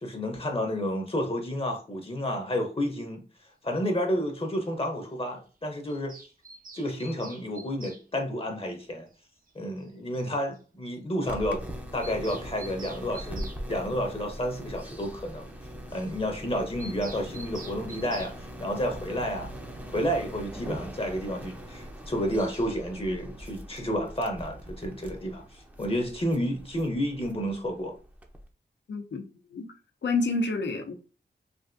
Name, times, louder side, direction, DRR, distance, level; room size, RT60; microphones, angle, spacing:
voice 1, 0.0-3.2 3.6-6.1 6.7-9.1 9.5-11.6 11.9-15.5 15.9-19.5 19.9-27.9, equal, 30° left, 0.7 m, -30 dB
Bird vocalization bird call bird song, 5.9-8.0 9.5-9.6 9.8-9.9 10.1-10.2 10.5-10.6 10.9-11.0 11.2-11.4 11.6-13.6 16.8-18.4, right 3 dB, 50° right, 0.6 m, -46 dB
sound 1, 11.3-28.5, equal, 10° right, 0.5 m, -41 dB
voice 2, 28.9-29.7 30.0-30.9, left 3 dB, 80° left, 0.6 m, -29 dB
3.3 x 2.5 x 2.5 m
wide cardioid pair, 70°, 18 cm